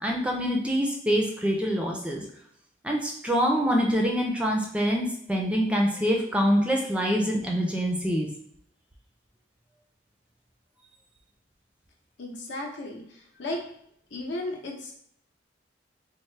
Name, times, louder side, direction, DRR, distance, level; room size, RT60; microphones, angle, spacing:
voice 1, 0.0-2.2 2.8-8.3, equal, 5° right, 0 dB, 0.4 m, -25 dB
voice 2, 12.2-13.6 14.1-15.0, left 1 dB, 65° left, 1 dB, 0.7 m, -35 dB
4.2 x 2.0 x 3.2 m, 0.68 s
head